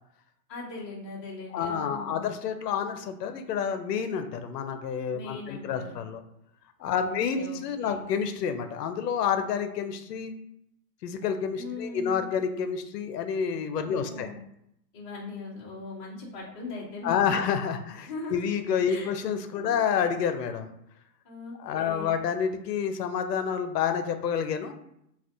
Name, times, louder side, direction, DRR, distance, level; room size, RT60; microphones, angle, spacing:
voice 1, 0.5-2.3 5.1-5.9 6.9-8.0 11.5-12.3 13.8-14.4 14.9-17.2 18.1-18.5 18.9-19.1 19.5-19.7 21.2-22.1, left 3 dB, 20° left, -7 dB, 0.4 m, -39 dB
voice 2, 1.5-6.2 6.8-10.3 11.0-14.3 17.0-20.7 21.6-24.7, left 7 dB, 70° left, 8 dB, 0.6 m, -29 dB
3.4 x 2.4 x 2.6 m, 0.76 s
hypercardioid pair, 145°, 50 cm